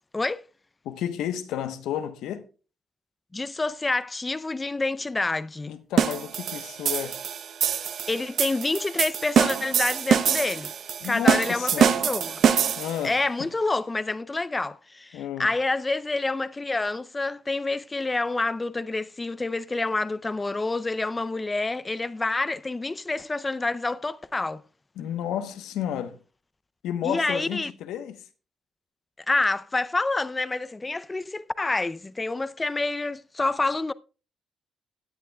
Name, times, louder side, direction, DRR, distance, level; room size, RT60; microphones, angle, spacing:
voice 1, 0.8-2.4 5.7-7.2 11.0-12.0 12.8-13.5 15.1-15.5 25.0-26.2 26.8-28.2, left 10 dB, 90° left, 1.0 m, -32 dB
voice 2, 3.3-5.7 8.1-10.7 11.0-12.3 13.0-24.6 27.0-27.7 29.3-33.9, left 3 dB, 20° left, 0.5 m, -28 dB
sound 1, 6.0-13.1, right 8 dB, 65° right, 0.8 m, -24 dB
16.5 x 9.6 x 2.3 m
cardioid pair, 90°, 0 cm